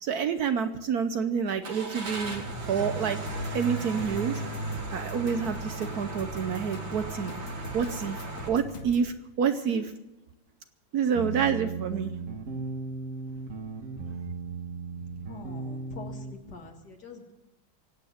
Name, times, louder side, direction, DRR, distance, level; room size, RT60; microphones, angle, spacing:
voice 1, 0.0-2.4 2.7-3.2 3.5-4.4 4.9-7.3 7.7-8.2 8.5-9.9 10.9-12.1, right 6 dB, 65° right, 9 dB, 1.1 m, -28 dB
Car / Engine starting, 1.6-8.5, right 3 dB, 85° right, 3.2 m, -36 dB
sound 1, 3.3-9.1, left 1 dB, 80° left, 3.0 m, -43 dB
sound 2, 11.1-16.3, right 4 dB, 45° right, 1.7 m, -36 dB
voice 2, 15.1-17.3, left 3 dB, 60° left, 3 dB, 2.6 m, -45 dB
24.0 x 9.0 x 5.7 m, 0.97 s
omnidirectional pair, 2.1 m